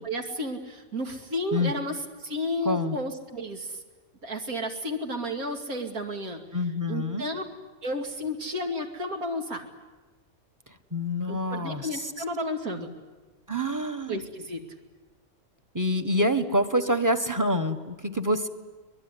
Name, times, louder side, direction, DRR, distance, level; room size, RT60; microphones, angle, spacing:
voice 1, 0.0-3.8 4.2-6.4 6.9-7.4 7.8-9.6 11.3-12.9 14.1-14.6, left 1 dB, 90° right, 4 dB, 3.0 m, -32 dB
voice 2, 2.6-3.0 6.5-7.2 10.9-12.0 13.5-14.2 15.7-18.5, equal, 15° right, 8 dB, 1.2 m, -26 dB
23.5 x 21.5 x 9.9 m, 1.3 s
omnidirectional pair, 1.5 m